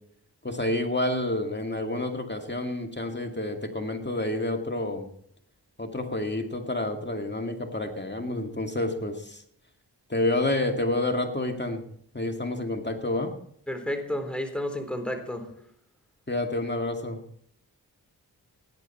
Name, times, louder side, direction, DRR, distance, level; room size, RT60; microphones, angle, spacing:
voice 1, 0.4-5.1 5.8-9.4 10.1-11.8 12.1-13.3 16.3-17.2, left 1 dB, 25° left, 4 dB, 2.2 m, -29 dB
voice 2, 13.7-15.5, left 1 dB, 5° left, 5 dB, 3.9 m, -31 dB
17.5 x 10.5 x 4.3 m, 0.65 s
cardioid pair, 45°, 40 cm